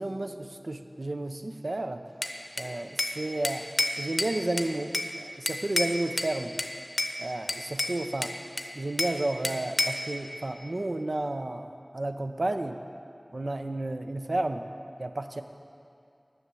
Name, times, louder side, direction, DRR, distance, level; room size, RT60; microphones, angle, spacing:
voice 1, 0.0-2.0 2.6-3.7 4.0-6.6 7.2-8.3 8.7-12.8 13.3-14.7 15.0-15.4, right 2 dB, 80° right, 6 dB, 0.5 m, -32 dB
Bell / Glass, 2.2-3.2 3.4-5.1 5.5-6.3 6.6-7.2 7.5-9.2 9.4-10.1, left 1 dB, 60° left, 0.7 m, -30 dB
9.9 x 6.5 x 7.5 m, 2.5 s
wide cardioid pair, 40°, 0 cm